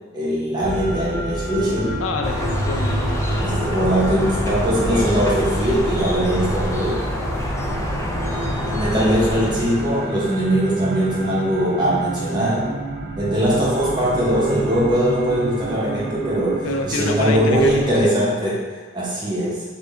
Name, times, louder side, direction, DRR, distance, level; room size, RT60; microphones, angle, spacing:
voice 1, 0.1-1.9 3.4-7.0 8.7-12.7 13.2-19.6, right 1 dB, 20° right, -7 dB, 0.9 m, -21 dB
sound 1, 0.6-18.1, right 1 dB, 55° right, 0.4 m, -29 dB
voice 2, 2.0-3.2 16.6-18.2, left 4 dB, 85° left, 4 dB, 0.4 m, -27 dB
sound 2, 2.2-10.2, left 1 dB, 15° left, 0.3 m, -26 dB
3.5 x 2.2 x 3.6 m, 1.4 s
head